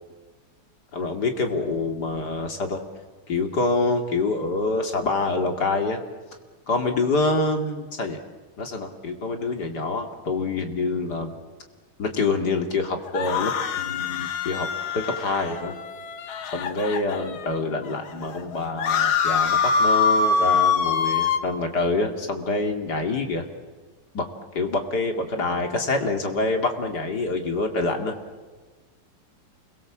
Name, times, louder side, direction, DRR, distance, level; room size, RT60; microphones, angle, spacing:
voice 1, 0.9-2.8 3.3-6.0 6.7-8.2 8.6-11.3 12.0-13.5 13.8-14.7 14.9-15.8 16.5-23.5 24.1-24.3 24.5-28.1, left 3 dB, 50° left, 4 dB, 2.9 m, -26 dB
sound 1, 13.1-17.5 18.0-18.1 18.3-21.4, left 5 dB, 80° left, 2.2 m, -24 dB
28.5 x 22.5 x 7.4 m, 1.4 s
omnidirectional pair, 2.3 m